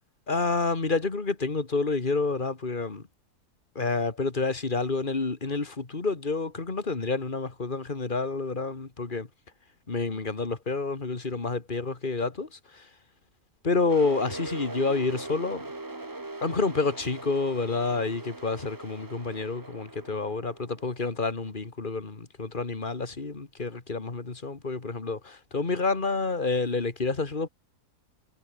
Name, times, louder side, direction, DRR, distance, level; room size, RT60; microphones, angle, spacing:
voice 1, 0.3-3.1 3.7-9.3 9.9-13.0 13.6-15.7 16.4-27.5, left 3 dB, 35° left, 2.3 m, -29 dB
sound 1, 13.9-21.5, right 2 dB, 15° right, 1.1 m, -41 dB
omnidirectional pair, 1.6 m